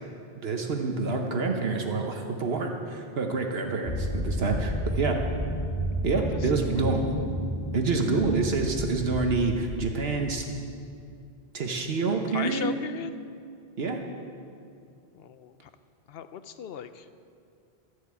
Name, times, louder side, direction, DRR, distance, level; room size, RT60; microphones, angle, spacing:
voice 1, 0.4-5.2 6.0-7.1 7.7-10.4 11.5-12.7 13.8-14.0, right 4 dB, 70° right, 3 dB, 1.2 m, -27 dB
sound 1, 3.8-10.6, equal, 30° left, 2.0 m, -31 dB
voice 2, 12.3-13.1 15.1-15.7 16.1-17.1, left 8 dB, 70° left, 11 dB, 0.8 m, -37 dB
13.0 x 8.0 x 8.2 m, 2.4 s
omnidirectional pair, 1.1 m